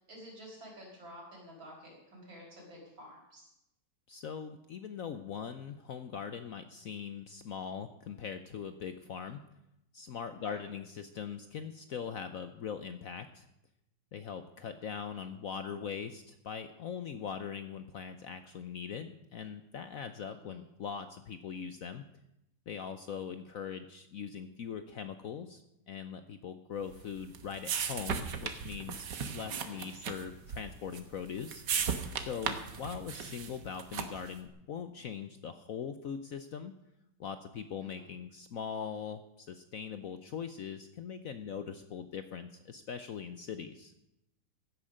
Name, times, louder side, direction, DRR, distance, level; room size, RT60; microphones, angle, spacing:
voice 1, 0.0-3.5 10.3-10.7 20.3-20.6 29.3-29.9 37.8-38.1, equal, 85° right, -2 dB, 5.7 m, -51 dB
voice 2, 4.1-9.4 9.9-13.5 14.1-22.0 22.7-25.6 25.9-31.6 32.1-36.7 37.2-43.9, left 7 dB, 65° left, 10 dB, 0.9 m, -41 dB
sound 1, 26.9-34.4, right 7 dB, 65° right, 1.7 m, -37 dB
16.0 x 9.5 x 6.5 m, 0.85 s
omnidirectional pair, 2.1 m